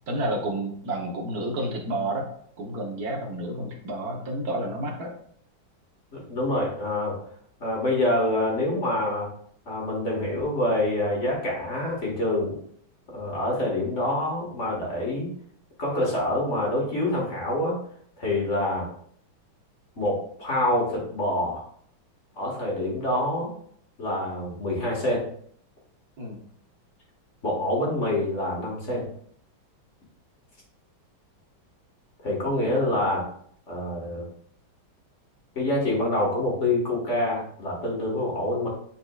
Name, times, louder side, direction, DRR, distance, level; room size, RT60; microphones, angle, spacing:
voice 1, 0.1-2.3 2.6-5.1 26.2-26.4, right 1 dB, 55° right, 0 dB, 1.5 m, -30 dB
voice 2, 6.1-7.2 7.6-9.3 9.7-12.6 13.1-15.3 15.8-17.8 18.2-18.9 20.0-21.7 22.4-23.5 24.0-25.2 27.4-29.1 32.2-33.2 33.7-34.3 35.5-38.7, left 1 dB, 35° left, -3 dB, 1.9 m, -26 dB
9.1 x 4.3 x 2.4 m, 0.63 s
omnidirectional pair, 2.2 m